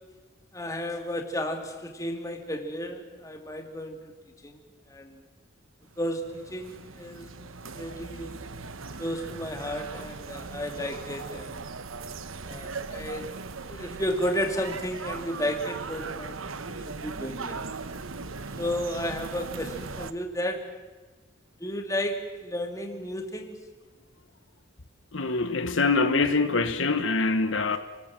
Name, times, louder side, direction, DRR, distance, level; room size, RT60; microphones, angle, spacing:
voice 1, 0.5-4.1 4.4-4.6 4.9-5.2 6.0-7.3 7.7-8.4 9.0-11.6 12.4-13.4 13.7-16.8 17.0-17.6 18.6-20.8 21.6-23.6 27.7-27.8, equal, 15° left, 2.4 m, -33 dB
sound 1, 5.9-20.1, right 4 dB, 85° right, 1.2 m, -39 dB
voice 2, 25.1-27.8, left 3 dB, 70° left, 1.3 m, -24 dB
29.5 x 19.5 x 7.7 m
head